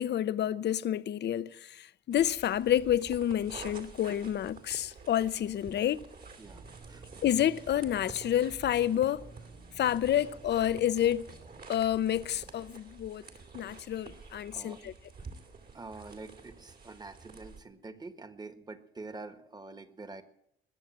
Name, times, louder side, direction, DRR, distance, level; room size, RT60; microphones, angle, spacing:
voice 1, 0.0-6.1 7.2-9.3 9.8-11.3 11.7-13.2 13.5-14.9, left 11 dB, 60° left, 0.7 m, -29 dB
sound 1, 2.1-17.6, right 4 dB, 50° right, 2.7 m, -49 dB
voice 2, 6.4-7.0 14.5-14.9 15.7-20.2, right 3 dB, 20° right, 1.6 m, -46 dB
sound 2, 6.4-11.6, right 4 dB, 70° right, 6.0 m, -53 dB
21.0 x 7.1 x 8.7 m
cardioid pair, 90°, 20 cm